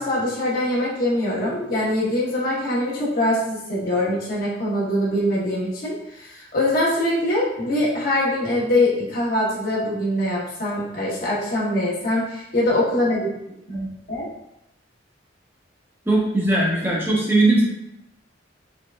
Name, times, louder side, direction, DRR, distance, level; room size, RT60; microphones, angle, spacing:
voice 1, 0.0-13.3 13.7-14.3, left 1 dB, 50° left, -6 dB, 1.1 m, -23 dB
voice 2, 16.1-17.6, right 2 dB, 10° right, -4 dB, 0.9 m, -19 dB
4.5 x 3.8 x 2.4 m, 0.84 s
head